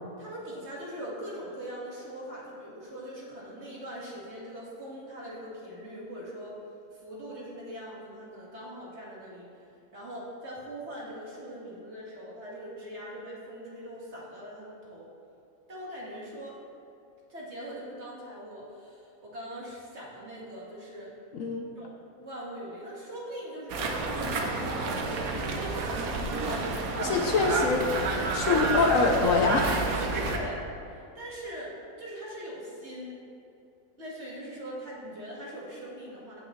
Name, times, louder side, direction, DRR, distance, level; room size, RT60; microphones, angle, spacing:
voice 1, 0.2-6.5 6.9-9.6 9.9-15.1 15.7-16.6 17.3-21.1 21.8-21.9 22.2-25.9 26.4-26.9 30.2-33.2 34.0-36.4, equal, 45° right, -5 dB, 2.0 m, -41 dB
voice 2, 21.3-21.6 26.9-27.9 28.3-30.0, left 4 dB, 65° left, 2 dB, 1.0 m, -25 dB
sound 1, 23.7-30.4, right 3 dB, 70° right, 1.3 m, -29 dB
16.0 x 6.1 x 3.2 m, 2.7 s
omnidirectional pair, 1.6 m